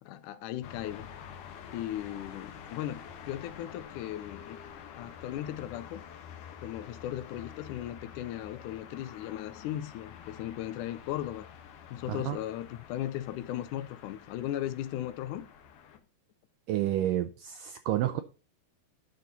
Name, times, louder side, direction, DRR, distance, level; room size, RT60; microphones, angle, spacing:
voice 1, 0.0-1.1 1.7-4.6 4.9-6.0 6.6-11.5 11.9-15.5, left 12 dB, 85° left, 1.7 m, -37 dB
sound 1, 0.6-16.0, left 8 dB, 65° left, 2.3 m, -48 dB
voice 2, 16.7-18.2, right 13 dB, 90° right, 1.9 m, -30 dB
10.5 x 6.4 x 4.0 m
omnidirectional pair, 4.6 m